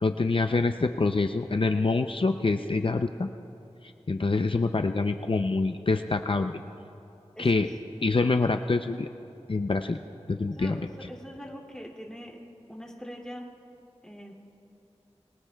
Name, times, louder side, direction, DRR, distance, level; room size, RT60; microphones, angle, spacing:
voice 1, 0.0-3.3 4.1-6.5 7.4-7.7 8.0-9.1 9.5-10.0 10.3-11.1, left 3 dB, 50° left, 6 dB, 0.5 m, -26 dB
voice 2, 7.4-7.7 10.5-12.4 12.7-13.4 14.0-14.3, equal, 5° left, -1 dB, 2.6 m, -42 dB
28.0 x 22.5 x 2.3 m, 2.8 s
wide cardioid pair, 50°, 11 cm